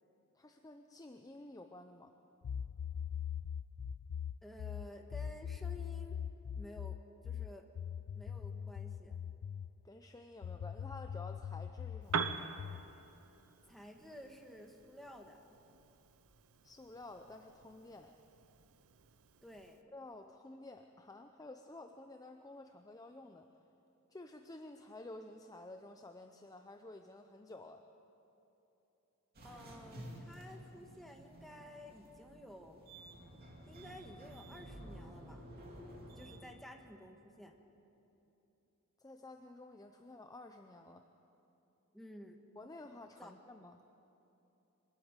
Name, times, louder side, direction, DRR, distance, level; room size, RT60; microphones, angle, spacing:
voice 1, 0.3-2.1 9.8-12.4 16.6-18.2 19.9-23.5 24.1-27.9 39.0-41.1 42.6-43.8, left 2 dB, 15° left, 5 dB, 0.6 m, -52 dB
sound 1, 2.4-9.7 10.4-12.9, left 8 dB, 85° left, 0.4 m, -42 dB
voice 2, 4.4-6.2 6.5-7.7 8.1-9.2 13.7-15.4 19.4-19.9 29.4-32.8 33.7-35.4 36.2-37.5 41.9-42.4 43.2-43.3, equal, ahead, 2 dB, 1.5 m, -53 dB
Piano, 12.0-19.8, right 5 dB, 70° right, 0.8 m, -45 dB
sound 2, 29.3-36.4, right 1 dB, 45° right, 2.8 m, -52 dB
24.5 x 13.0 x 9.0 m, 3.0 s
head